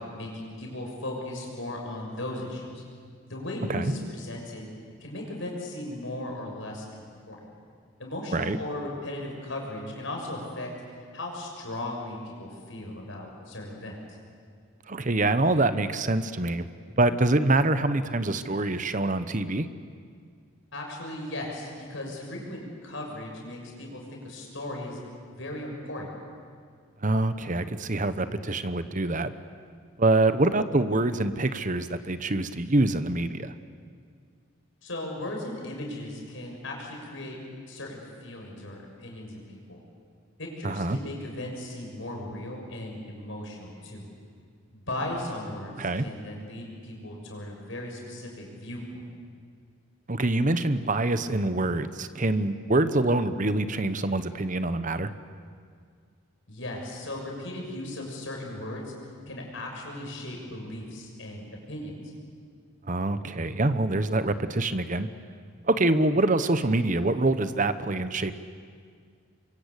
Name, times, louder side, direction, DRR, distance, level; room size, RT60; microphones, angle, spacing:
voice 1, 0.0-2.8 3.2-4.7 5.0-7.4 8.0-10.7 11.1-14.0 20.7-25.0 25.3-26.1 34.8-37.4 37.7-39.4 39.7-39.8 40.4-44.1 44.7-49.0 56.5-58.9 59.3-62.0, left 1 dB, 70° left, 1 dB, 6.5 m, -37 dB
voice 2, 14.9-16.7 17.0-19.7 27.0-29.3 30.0-33.5 40.6-41.0 45.8-46.0 50.1-55.1 62.9-65.1 65.6-68.3, right 2 dB, 40° right, 12 dB, 1.0 m, -25 dB
27.0 x 24.0 x 8.3 m, 2.1 s
head